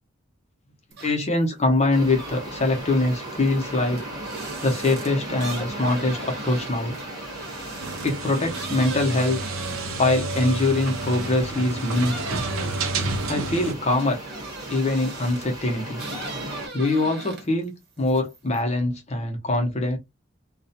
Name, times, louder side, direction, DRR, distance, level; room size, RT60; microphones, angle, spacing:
sound 1, 0.9-1.4 1.8-11.5 11.9-15.6 15.9-17.6 18.0-18.6, right 3 dB, 50° right, 0.9 m, -40 dB
voice 1, 1.0-4.0 4.6-7.0 8.0-9.4 10.0-12.4 13.3-14.2 14.7-16.0 16.7-20.0, left 2 dB, 30° left, 0.6 m, -23 dB
sound 2, 1.9-16.7, right 1 dB, 20° right, 1.1 m, -37 dB
sound 3, 7.8-13.7, right 3 dB, 80° right, 0.5 m, -30 dB
2.3 x 2.1 x 2.6 m
head